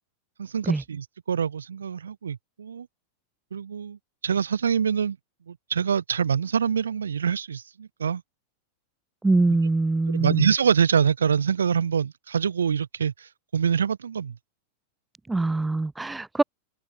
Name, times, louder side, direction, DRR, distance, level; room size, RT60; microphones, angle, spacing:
voice 1, 0.4-2.9 3.5-4.0 4.2-5.2 5.5-8.2 10.1-14.4, right 7 dB, 70° right, 1.5 m, -25 dB
voice 2, 9.2-10.5 15.3-16.4, right 3 dB, 10° right, 0.6 m, -23 dB
figure-of-eight pair, 90°, 0 cm